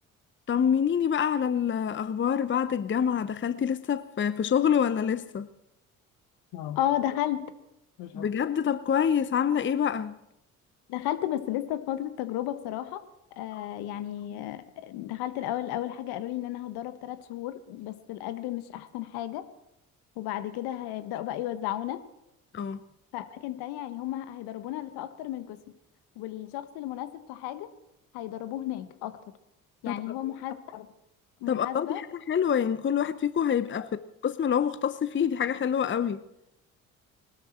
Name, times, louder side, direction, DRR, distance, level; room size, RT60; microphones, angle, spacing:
voice 1, 0.5-5.5 8.1-10.2 13.6-13.7 22.5-22.8 29.9-30.2 31.5-33.9 34.2-36.2, left 8 dB, 30° left, 0.9 m, -26 dB
voice 2, 6.5-7.4 8.0-8.3 10.9-13.0 13.4-19.4 20.2-22.0 23.1-25.6 26.2-27.7 28.1-29.1 29.8-30.9 31.4-32.0, left 13 dB, 65° left, 1.4 m, -33 dB
21.0 x 13.0 x 4.4 m
hypercardioid pair, 50°, 40 cm